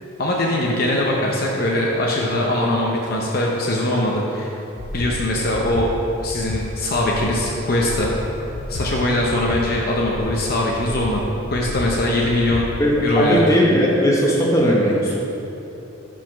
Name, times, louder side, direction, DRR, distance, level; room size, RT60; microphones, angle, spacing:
voice 1, 0.2-4.5 4.9-5.9 6.2-8.1 8.7-12.7 13.0-13.6 15.0-15.1, left 1 dB, 45° left, -2 dB, 0.6 m, -21 dB
Breathing, 4.8-5.1 5.5-5.9 6.3-6.6 7.0-7.4 7.8-8.1 8.5-8.9 9.3-9.6 10.0-10.4 10.8-11.1 11.5-11.9 12.3-12.6, left 2 dB, 85° left, 0.6 m, -31 dB
voice 2, 12.8-15.0, equal, 15° left, -4 dB, 0.9 m, -17 dB
5.7 x 5.0 x 5.8 m, 2.9 s
head